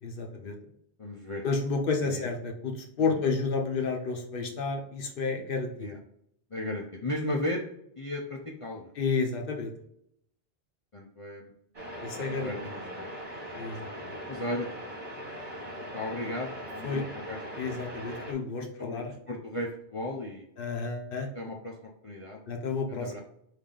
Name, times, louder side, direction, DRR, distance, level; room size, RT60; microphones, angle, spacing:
voice 1, 0.0-0.6 1.4-5.9 9.0-9.7 12.0-12.5 13.5-14.2 16.8-17.1 17.6-19.1 20.6-21.3 22.5-23.2, left 4 dB, 55° left, 3 dB, 1.0 m, -31 dB
voice 2, 1.0-1.4 2.1-2.3 3.0-3.1 5.8-6.0 6.5-7.6 8.0-8.9 10.9-11.5 12.1-12.7 13.0-13.1 14.3-14.7 15.9-17.6 18.8-20.5 21.3-21.7 22.0-22.4 22.9-23.2, left 1 dB, 35° left, -2 dB, 0.6 m, -35 dB
sound 1, 11.7-18.3, equal, 35° right, 1.2 m, -40 dB
5.0 x 2.7 x 3.8 m, 0.72 s
omnidirectional pair, 1.1 m